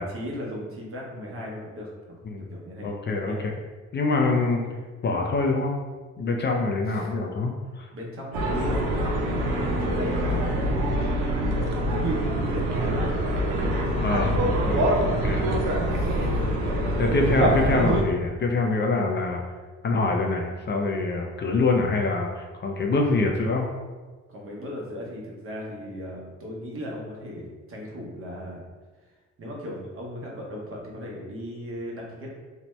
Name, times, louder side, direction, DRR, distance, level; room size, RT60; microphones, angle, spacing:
voice 1, 0.0-2.2 2.5-2.9 3.2-3.4 6.9-7.1 7.4-7.6 7.9-11.1 11.3-16.7 24.3-28.6 29.0-29.1 29.4-32.3, equal, 45° right, -2 dB, 0.8 m, -37 dB
voice 2, 2.8-3.5 3.9-4.7 5.0-5.7 6.2-7.9 14.0-14.8 15.2-15.4 15.7-16.2 17.0-19.4 19.8-23.7, left 3 dB, 35° left, 2 dB, 0.4 m, -25 dB
sound 1, 8.3-18.0, right 1 dB, 90° right, 0.5 m, -24 dB
2.7 x 2.1 x 3.0 m, 1.3 s
cardioid pair, 90°, 30 cm